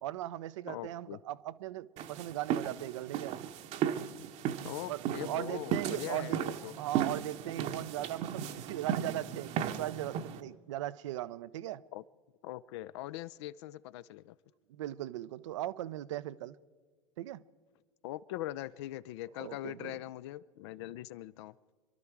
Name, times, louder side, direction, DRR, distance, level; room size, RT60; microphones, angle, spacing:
voice 1, 0.0-3.4 4.9-6.4 6.8-11.8 14.7-16.6 17.2-17.4 19.4-20.0, right 14 dB, 60° right, 0.5 m, -38 dB
voice 2, 0.7-1.2 4.6-6.7 11.9-12.0 12.4-14.4 18.0-21.6, left 14 dB, 50° left, 0.5 m, -41 dB
sound 1, 2.0-10.4, right 9 dB, 40° right, 0.9 m, -36 dB
26.5 x 11.5 x 4.6 m
figure-of-eight pair, 85°, 18 cm